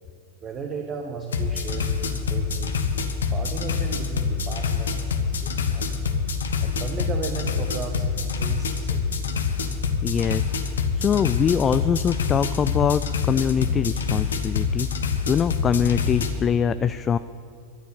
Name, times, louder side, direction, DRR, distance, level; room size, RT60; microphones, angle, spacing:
voice 1, 0.4-1.9 2.3-2.7 3.3-6.1 6.6-9.3, right 4 dB, 30° right, 2 dB, 1.4 m, -35 dB
sound 1, 1.3-16.3, left 5 dB, 70° left, 1.2 m, -26 dB
voice 2, 10.0-10.4 11.0-17.2, left 7 dB, 25° left, 13 dB, 0.4 m, -23 dB
13.5 x 8.2 x 8.6 m, 2.4 s
figure-of-eight pair, 90°, 0 cm